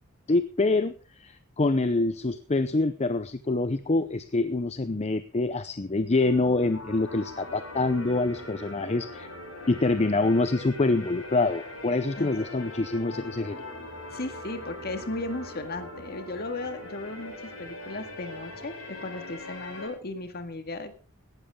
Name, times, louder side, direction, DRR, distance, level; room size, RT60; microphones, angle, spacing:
voice 1, 0.3-0.9 1.2-9.3 9.7-13.7, left 2 dB, 30° left, 12 dB, 0.6 m, -26 dB
sound 1, 6.2-19.9, left 1 dB, 65° left, 7.4 m, -41 dB
voice 2, 14.1-21.0, left 2 dB, 45° left, 8 dB, 1.9 m, -36 dB
17.5 x 12.5 x 3.7 m, 0.36 s
head